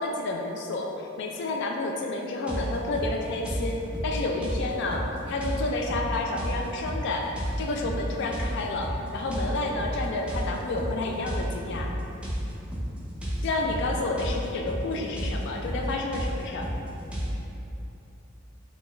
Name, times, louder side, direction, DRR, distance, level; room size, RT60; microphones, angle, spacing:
voice 1, 0.0-11.9 13.4-16.7, left 2 dB, 60° left, 1 dB, 0.3 m, -30 dB
sound 1, 2.5-17.3, equal, 5° right, 0.5 m, -32 dB
4.3 x 2.2 x 3.1 m, 2.9 s
head